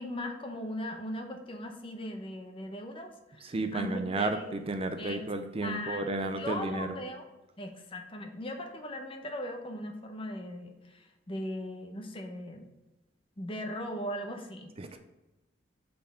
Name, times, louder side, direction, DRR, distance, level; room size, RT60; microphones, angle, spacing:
voice 1, 0.0-4.5 5.0-5.3 5.6-7.2 7.6-12.7 13.4-15.0, left 1 dB, 30° left, 5 dB, 0.8 m, -39 dB
voice 2, 3.4-7.0 14.8-15.0, right 2 dB, 30° right, 7 dB, 0.4 m, -32 dB
5.6 x 4.3 x 5.1 m, 1.1 s
head